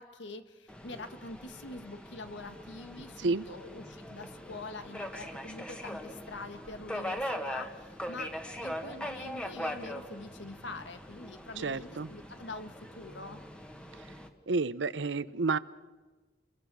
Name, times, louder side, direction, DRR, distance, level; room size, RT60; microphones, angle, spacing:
voice 1, 0.0-8.3 8.6-13.4, left 3 dB, 85° left, 8 dB, 1.8 m, -45 dB
Subway metro underground, 0.7-14.3, equal, 5° left, 1.7 m, -41 dB
voice 2, 11.6-12.1 14.5-15.6, right 3 dB, 80° right, 16 dB, 0.8 m, -30 dB
29.5 x 22.0 x 6.3 m, 1.3 s
head